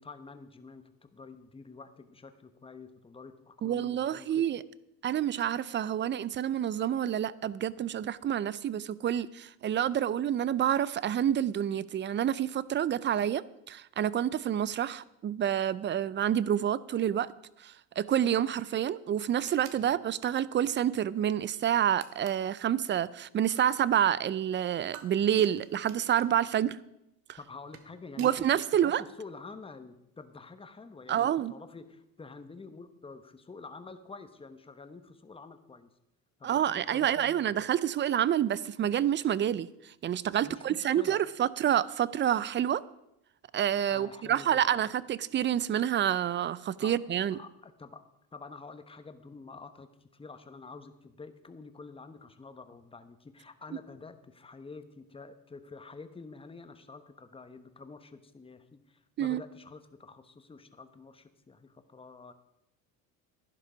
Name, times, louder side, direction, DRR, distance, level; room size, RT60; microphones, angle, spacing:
voice 1, 0.0-4.5 19.8-20.0 27.4-35.9 36.4-37.6 40.4-41.2 43.9-44.8 46.8-47.0 47.3-62.3, left 4 dB, 15° left, 1.0 m, -48 dB
voice 2, 3.6-4.6 5.0-17.3 17.6-26.8 27.3-27.4 28.2-29.0 31.1-31.5 36.4-42.8 43.5-47.4 59.2-59.4, right 10 dB, 30° right, 0.4 m, -28 dB
sound 1, 19.4-19.8 22.0-22.5 24.9-26.3 27.5-28.4, right 9 dB, 90° right, 1.2 m, -50 dB
11.5 x 10.5 x 5.1 m
supercardioid pair, 100°, 38 cm